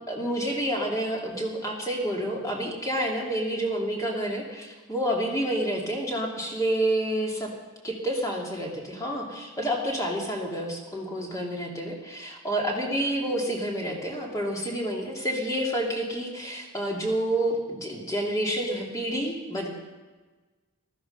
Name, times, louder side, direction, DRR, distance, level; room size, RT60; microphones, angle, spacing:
voice 1, 0.1-7.5 7.8-19.7, right 1 dB, 15° left, -1 dB, 2.6 m, -29 dB
15.0 x 13.5 x 5.4 m, 1.3 s
head